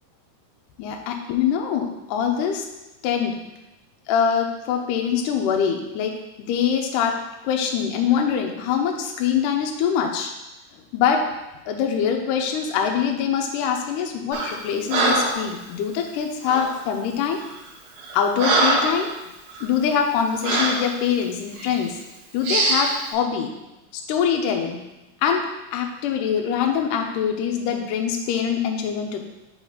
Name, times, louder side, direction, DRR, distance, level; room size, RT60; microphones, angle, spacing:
voice 1, 0.8-2.6 3.0-3.4 4.1-7.2 7.4-10.3 10.9-11.3 11.7-17.4 18.1-19.1 19.6-22.0 22.3-23.5 23.9-24.8 25.2-29.2, left 7 dB, 80° left, 2 dB, 1.9 m, -24 dB
Breathing, 14.3-14.6 14.9-15.4 16.4-16.7 17.4-17.6 18.0-19.0 19.5-19.7 20.4-20.8 21.6-21.8 22.4-22.9, right 2 dB, 85° right, 1.5 m, -22 dB
5.5 x 4.0 x 4.9 m, 1.0 s
omnidirectional pair, 4.5 m